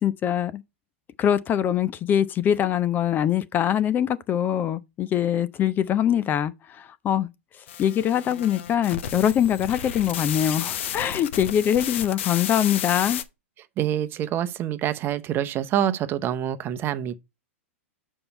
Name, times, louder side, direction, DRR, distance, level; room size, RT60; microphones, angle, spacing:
voice 1, 0.0-0.6 1.2-7.3 7.6-13.2, left 10 dB, 25° left, 0.5 m, -23 dB
sound 1, 7.7-13.2, left 9 dB, 60° left, 0.9 m, -32 dB
voice 2, 13.8-17.2, right 11 dB, 30° right, 0.8 m, -26 dB
6.9 x 5.4 x 4.4 m
hypercardioid pair, 105°, 7 cm